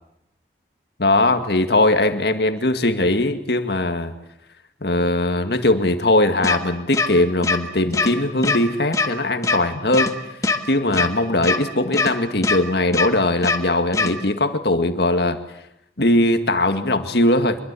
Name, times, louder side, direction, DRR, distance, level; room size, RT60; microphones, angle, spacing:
voice 1, 1.0-4.1 4.8-10.2 10.7-15.4 16.0-17.6, left 1 dB, 60° left, 8 dB, 2.1 m, -20 dB
sound 1, 6.4-6.6 6.9-7.1 7.4-7.6 7.9-8.1 8.4-8.6 8.9-9.1 9.4-9.6 9.9-10.1 10.4-10.6 10.9-11.1 11.4-11.6 11.9-12.1 12.4-12.6 12.9-13.1 13.4-13.6 13.9-14.1, left 3 dB, 20° left, 1.7 m, -20 dB
25.0 x 23.0 x 8.5 m, 0.82 s
head